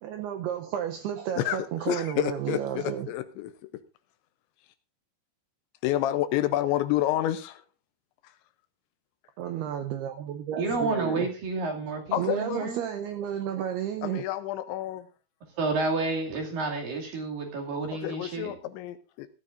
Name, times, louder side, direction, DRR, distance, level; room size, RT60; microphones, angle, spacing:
voice 1, 0.0-3.1 9.4-11.3 12.1-14.2, right 10 dB, 80° right, 5 dB, 2.4 m, -32 dB
voice 2, 1.4-3.5 5.8-7.6 12.1-12.7 14.0-15.1 18.0-19.3, left 13 dB, 80° left, 11 dB, 3.0 m, -29 dB
voice 3, 10.6-12.8 15.5-18.6, right 3 dB, 50° right, 0 dB, 3.9 m, -30 dB
18.0 x 13.0 x 2.6 m, 0.33 s
omnidirectional pair, 5.4 m